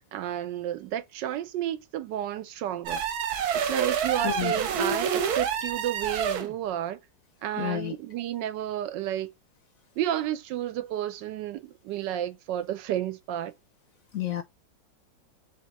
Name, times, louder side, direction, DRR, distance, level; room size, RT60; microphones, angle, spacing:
voice 1, 0.1-3.0 3.5-7.0 7.4-9.3 10.0-13.5, right 11 dB, 80° right, 1.3 m, -31 dB
sound 1, 2.9-6.5, right 7 dB, 65° right, 1.2 m, -28 dB
voice 2, 4.2-4.5 7.6-8.0 14.1-14.4, left 13 dB, 70° left, 0.9 m, -30 dB
3.7 x 3.5 x 4.0 m
omnidirectional pair, 1.9 m